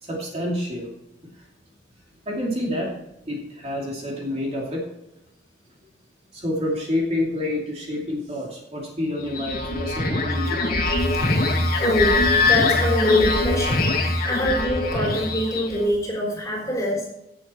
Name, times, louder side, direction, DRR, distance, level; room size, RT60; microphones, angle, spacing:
voice 1, 0.0-0.9 1.2-1.4 2.3-2.9 3.3-4.8 6.3-10.8, left 1 dB, 35° right, -3 dB, 2.7 m, -28 dB
sound 1, 9.2-15.9, left 2 dB, 45° left, 2.2 m, -22 dB
voice 2, 11.0-17.1, left 1 dB, 15° left, -2 dB, 3.7 m, -25 dB
16.5 x 7.3 x 4.4 m, 0.88 s
head